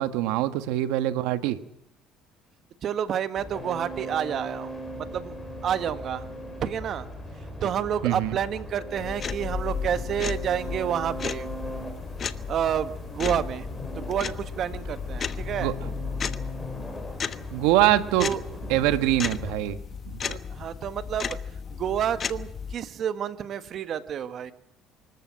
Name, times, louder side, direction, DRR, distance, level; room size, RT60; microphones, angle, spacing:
voice 1, 0.0-1.6 8.0-8.4 15.6-15.7 17.5-18.3 18.7-19.8 20.0-20.4, right 14 dB, 85° right, 10 dB, 1.5 m, -24 dB
voice 2, 2.8-5.3 5.6-6.3 6.6-7.1 7.6-11.5 12.5-16.1 18.2-19.1 20.5-21.4 21.7-24.5, right 9 dB, 50° right, 10 dB, 1.6 m, -29 dB
sound 1, 3.4-19.5, equal, 10° left, 7.8 m, -39 dB
sound 2, 9.0-22.8, left 6 dB, 35° left, 1.1 m, -34 dB
25.0 x 14.0 x 8.9 m, 0.77 s
cardioid pair, 110°, 0 cm